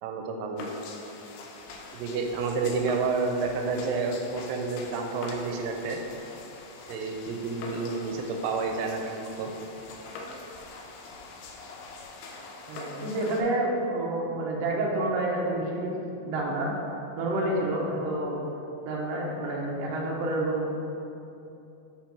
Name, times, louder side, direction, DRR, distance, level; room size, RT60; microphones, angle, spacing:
voice 1, 0.0-0.7 1.9-6.0 6.9-9.5, right 4 dB, 85° right, 3 dB, 2.2 m, -30 dB
sound 1, 0.6-13.4, left 3 dB, 90° left, 2.3 m, -43 dB
voice 2, 12.7-15.9 16.2-16.7 17.2-18.4 18.8-20.9, right 2 dB, 70° right, -3 dB, 1.7 m, -29 dB
5.0 x 4.4 x 5.8 m, 2.9 s
omnidirectional pair, 3.9 m